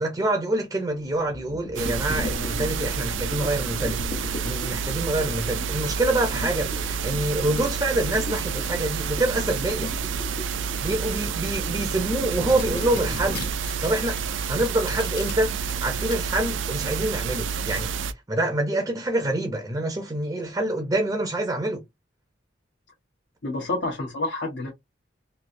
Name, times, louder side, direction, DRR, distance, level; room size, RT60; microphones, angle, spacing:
voice 1, 0.0-9.9 10.8-13.4 13.8-17.9 18.3-21.8, right 1 dB, 20° right, 0.5 m, -26 dB
sound 1, 0.9-13.5, left 2 dB, 35° left, 0.5 m, -38 dB
sound 2, 1.8-18.1, right 6 dB, 85° right, 0.4 m, -29 dB
sound 3, 12.6-15.3 15.7-16.2, left 6 dB, 50° left, 1.5 m, -39 dB
voice 2, 23.4-24.7, left 2 dB, 75° left, 1.2 m, -28 dB
3.2 x 2.7 x 2.6 m
head